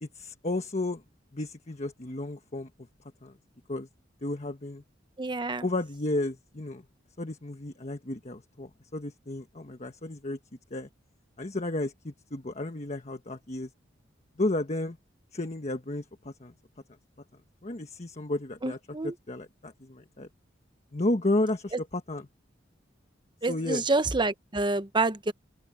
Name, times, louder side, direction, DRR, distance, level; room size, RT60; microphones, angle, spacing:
voice 1, 0.0-1.0 1.3-2.7 3.2-3.3 3.7-3.9 4.2-4.8 5.6-6.8 7.2-10.4 10.7-10.9 11.4-13.7 14.4-15.0 15.3-16.5 17.6-18.8 19.0-20.3 20.9-22.3 23.5-23.8, left 2 dB, 35° left, 1.3 m, -32 dB
voice 2, 5.2-5.6 18.6-19.1 23.4-25.3, right 3 dB, 25° right, 0.9 m, -28 dB
open air
head